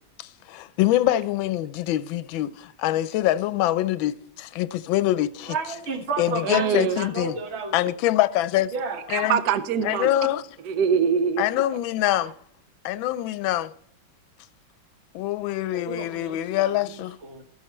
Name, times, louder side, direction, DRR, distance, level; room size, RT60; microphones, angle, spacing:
voice 1, 0.2-5.6 6.2-7.4 7.7-8.7 9.1-9.4 9.8-10.4 11.4-12.3 12.8-13.7 15.1-17.2, left 14 dB, 85° left, 1.3 m, -24 dB
voice 2, 5.5-7.9 8.7-9.0 15.7-17.4, right 4 dB, 40° right, 1.3 m, -32 dB
voice 3, 6.4-7.0 9.1-10.1 10.6-11.6 12.0-12.3, right 7 dB, 65° right, 1.2 m, -24 dB
13.5 x 7.3 x 4.3 m
omnidirectional pair, 2.1 m